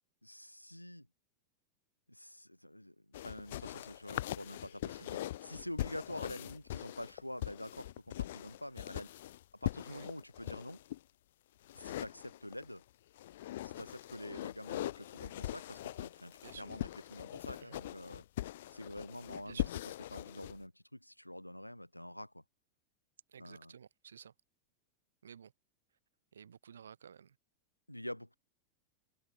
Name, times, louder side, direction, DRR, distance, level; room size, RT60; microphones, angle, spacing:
voice 1, 0.2-1.1 2.1-9.1 9.6-10.8 11.7-12.8 13.6-18.2 18.7-19.7 20.1-22.4 23.4-23.7 27.9-28.4, left 1 dB, 90° left, 5.1 m, -47 dB
sound 1, 3.1-11.0 11.6-12.7 13.2-20.6, left 14 dB, 55° left, 1.3 m, -42 dB
voice 2, 16.4-16.7 17.6-17.8 19.4-19.7 23.3-24.3 25.2-25.5 26.3-27.3, right 7 dB, 70° right, 3.0 m, -53 dB
figure-of-eight pair, 90°, 0 cm